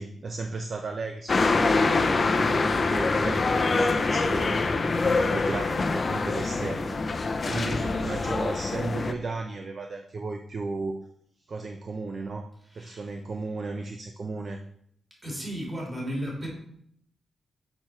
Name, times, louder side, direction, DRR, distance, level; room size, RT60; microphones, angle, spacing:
voice 1, 0.0-7.0 7.4-11.0 11.5-12.5 12.8-14.6, right 3 dB, 40° right, 5 dB, 0.5 m, -35 dB
sound 1, 1.3-9.1, left 3 dB, 30° left, 0.5 m, -25 dB
voice 2, 2.1-2.6 7.4-7.7 12.7-13.1 15.2-16.5, equal, 20° right, -3 dB, 2.7 m, -35 dB
6.7 x 5.7 x 4.4 m, 0.70 s
wide cardioid pair, 145°, 0 cm